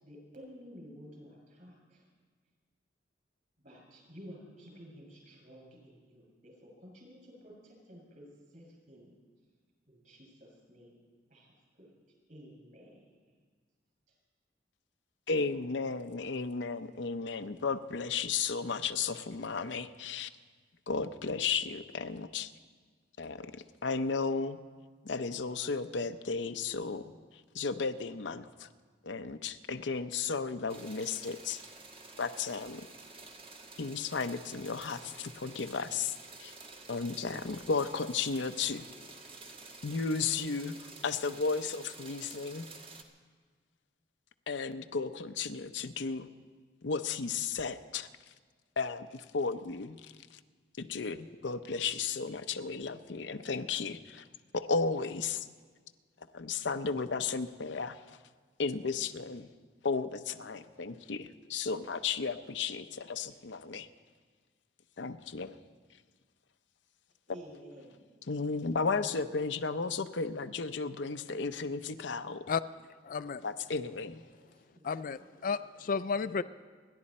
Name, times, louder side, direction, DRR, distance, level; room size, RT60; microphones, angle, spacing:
voice 1, 0.0-2.0 3.6-9.1 9.9-11.0 11.3-11.9 12.3-13.1 67.3-68.1 74.4-74.9, equal, 45° right, -1 dB, 6.4 m, -52 dB
voice 2, 15.3-20.3 20.9-22.5 23.2-23.5 23.8-24.6 25.0-27.2 27.5-28.7 29.0-31.6 32.2-32.8 33.8-36.1 36.4-36.6 36.9-38.9 39.8-40.8 41.0-42.7 44.5-46.3 46.8-48.1 48.8-50.4 50.8-54.3 54.5-55.5 56.3-58.0 58.6-59.5 59.8-63.9 65.0-65.5 68.3-72.5 73.4-74.2, left 4 dB, 80° left, 9 dB, 0.7 m, -34 dB
sound 1, 30.7-43.0, right 3 dB, 30° right, 1.3 m, -50 dB
voice 3, 73.0-73.4 74.8-76.4, left 5 dB, 50° left, 12 dB, 0.4 m, -33 dB
28.5 x 11.0 x 4.3 m, 1.5 s
head